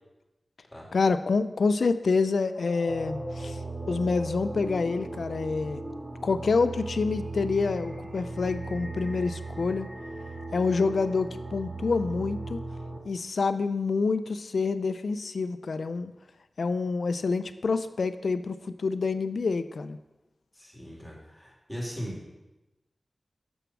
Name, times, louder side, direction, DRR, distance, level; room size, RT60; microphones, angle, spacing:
voice 1, 0.9-3.6 3.9-5.8 6.2-9.9 10.5-12.6 13.0-16.1 16.6-20.0, left 4 dB, 85° left, 11 dB, 0.4 m, -27 dB
sound 1, 2.5-11.5, equal, 20° right, 1.8 m, -44 dB
sound 2, 2.9-13.0, right 3 dB, 35° right, 1.4 m, -38 dB
voice 2, 20.5-22.3, equal, ahead, -4 dB, 2.9 m, -39 dB
6.8 x 6.2 x 6.0 m, 1.0 s
wide cardioid pair, 60°, 0 cm